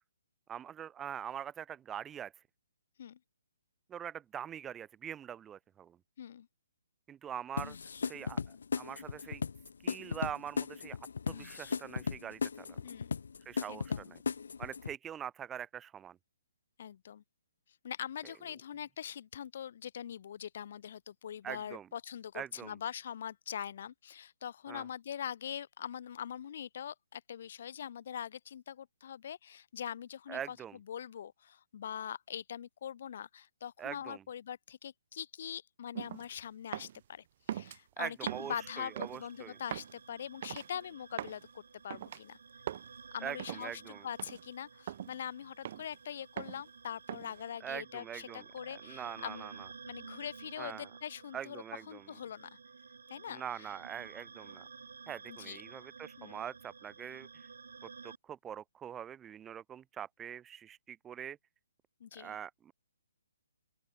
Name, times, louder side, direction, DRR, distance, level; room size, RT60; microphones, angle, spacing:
voice 1, 0.5-2.3 3.9-6.0 7.1-7.8 8.0-9.4 9.8-11.0 11.3-12.8 13.4-14.2 14.6-16.2 21.4-21.9 22.3-22.7 24.7-24.8 30.3-30.8 33.8-34.2 38.0-39.6 43.2-44.1 47.6-48.4 48.8-49.7 50.6-50.9 51.3-52.1 53.3-54.6 55.1-57.5 58.0-61.4 62.2-62.7, right 9 dB, 15° right, 1.4 m, -43 dB
sound 1, 7.6-14.9, left 5 dB, 70° left, 0.4 m, -37 dB
voice 2, 12.8-13.2 13.7-14.1 16.8-17.2 17.8-42.4 43.1-49.5 49.9-52.5 53.1-53.7 55.3-55.6 56.2-56.4 62.0-62.4, left 9 dB, 55° left, 3.3 m, -43 dB
sound 2, 35.9-36.3 36.7-37.0 37.5-37.8 38.3-38.6 39.0-39.2 39.7-39.9 40.4-40.7 41.2-41.4 41.9-42.2 42.7-42.9 43.4-43.7 44.2-44.4 44.9-45.1 45.6-46.0 46.4-46.6 47.1-47.4, right 11 dB, 45° right, 1.4 m, -41 dB
sound 3, 38.2-58.2, right 5 dB, 75° right, 4.2 m, -53 dB
open air
hypercardioid pair, 145°, 0 cm